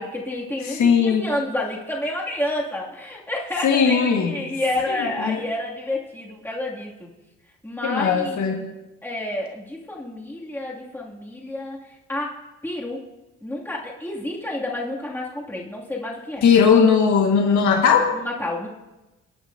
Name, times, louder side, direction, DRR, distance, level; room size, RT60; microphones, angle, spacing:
voice 1, 0.0-7.1 7.6-8.7 9.0-11.8 12.1-13.0 13.4-16.4 18.1-18.7, left 1 dB, 5° left, -4 dB, 2.5 m, -29 dB
voice 2, 0.7-1.3 3.6-4.4 4.9-5.4 7.8-8.7 16.4-18.1, left 6 dB, 70° left, 1 dB, 1.7 m, -18 dB
24.0 x 9.3 x 2.7 m, 1.0 s
cardioid pair, 90°, 30 cm